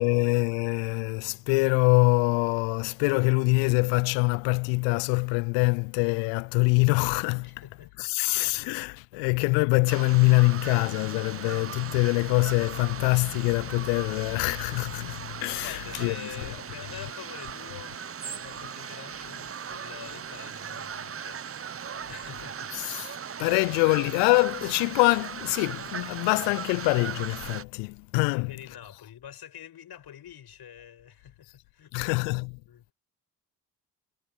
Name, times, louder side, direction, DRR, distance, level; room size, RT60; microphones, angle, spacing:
voice 1, 0.0-7.7 8.0-16.3 22.7-28.8 31.9-32.6, left 31 dB, 65° left, 0.7 m, -24 dB
voice 2, 7.4-8.1 8.9-9.2 15.6-21.4 22.1-22.7 28.3-31.9 32.7-32.8, left 9 dB, 50° left, 6.3 m, -46 dB
sound 1, 9.9-27.6, right 7 dB, 30° right, 1.0 m, -38 dB
hypercardioid pair, 50°, 47 cm